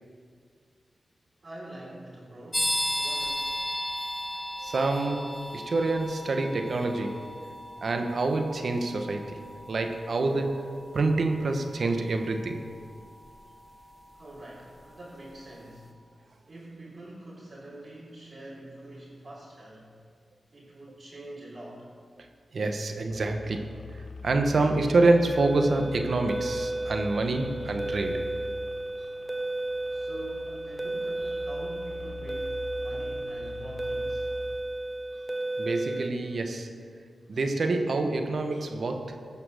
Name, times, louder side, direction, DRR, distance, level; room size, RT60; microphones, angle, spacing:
voice 1, 1.4-3.6 14.1-15.9 16.5-20.0 20.5-21.9 29.9-34.3, right 1 dB, 50° right, -9 dB, 3.4 m, -45 dB
sound 1, 2.5-15.1, left 1 dB, 15° left, 1.6 m, -36 dB
voice 2, 4.6-7.3 7.8-9.4 9.7-12.6 22.5-23.7 24.2-28.2 35.6-36.8 37.3-39.3, right 2 dB, 70° right, 5 dB, 1.2 m, -27 dB
sound 2, 23.1-34.6, left 4 dB, 85° left, 0.9 m, -44 dB
sound 3, 25.3-36.1, right 2 dB, 20° right, 0.8 m, -33 dB
16.0 x 5.9 x 6.5 m, 2.1 s
cardioid pair, 50°, 0 cm